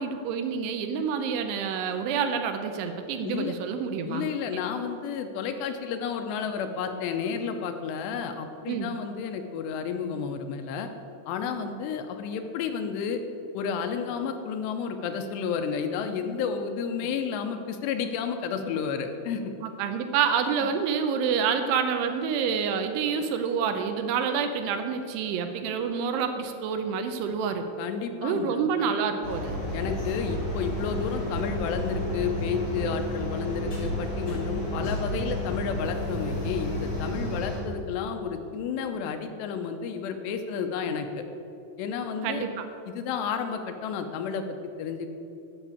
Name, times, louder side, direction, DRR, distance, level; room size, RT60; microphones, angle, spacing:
voice 1, 0.0-4.3 8.7-8.9 19.8-27.6 28.2-29.6 42.2-42.7, right 6 dB, 80° right, 7 dB, 2.7 m, -28 dB
voice 2, 3.2-3.6 4.0-10.9 11.3-13.2 13.5-19.5 27.8-28.6 29.7-41.3 41.8-42.5 42.9-45.1, left 6 dB, 80° left, 6 dB, 2.9 m, -31 dB
sound 1, 29.2-37.6, left 1 dB, 30° left, 2.6 m, -31 dB
11.0 x 5.8 x 8.5 m, 2.7 s
omnidirectional pair, 5.0 m